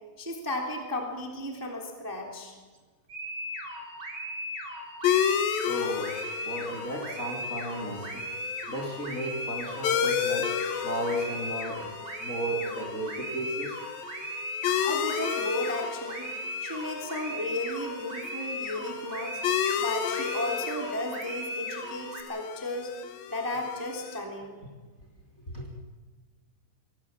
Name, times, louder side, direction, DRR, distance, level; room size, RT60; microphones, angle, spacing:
voice 1, 0.2-2.6 14.8-16.3 16.6-19.4 19.8-22.9 23.3-24.5, left 1 dB, 5° right, 2 dB, 2.7 m, -34 dB
sound 1, 3.1-22.2, equal, 30° right, 3.8 m, -38 dB
sound 2, 5.0-24.2, left 8 dB, 80° left, 3.0 m, -33 dB
voice 2, 5.6-6.1 6.4-8.2 8.7-10.5 10.8-11.9 12.2-13.8 25.5-25.7, equal, 25° left, 1 dB, 3.1 m, -34 dB
24.0 x 18.5 x 7.4 m, 1.4 s
omnidirectional pair, 4.1 m